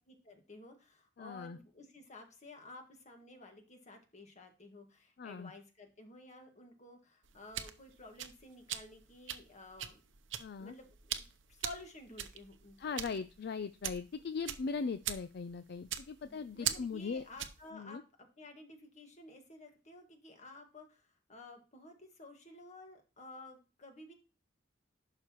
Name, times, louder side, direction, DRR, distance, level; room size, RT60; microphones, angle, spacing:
voice 1, 0.1-10.0 10.6-11.2 11.5-13.1 16.2-24.1, left 2 dB, 40° left, 4 dB, 1.8 m, -53 dB
voice 2, 1.2-1.6 5.2-5.5 10.4-10.8 12.8-17.2 17.7-18.0, left 5 dB, 60° left, 13 dB, 0.4 m, -39 dB
sound 1, 7.2-17.7, right 10 dB, 85° right, 0.8 m, -42 dB
11.0 x 5.8 x 3.0 m, 0.33 s
head